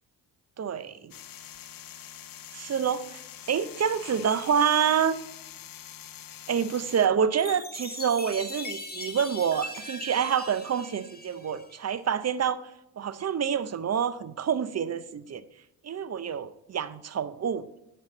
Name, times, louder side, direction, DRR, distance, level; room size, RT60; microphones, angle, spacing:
voice 1, 0.6-1.1 2.5-3.2 3.5-5.2 6.5-12.6 13.0-15.4 15.8-17.6, right 7 dB, 35° right, 15 dB, 0.6 m, -27 dB
sound 1, 1.1-7.1, left 10 dB, 45° left, 0.7 m, -45 dB
Chime, 7.4-12.0, left 2 dB, 20° left, 1.4 m, -40 dB
9.6 x 5.6 x 4.0 m, 0.88 s
hypercardioid pair, 50°, 47 cm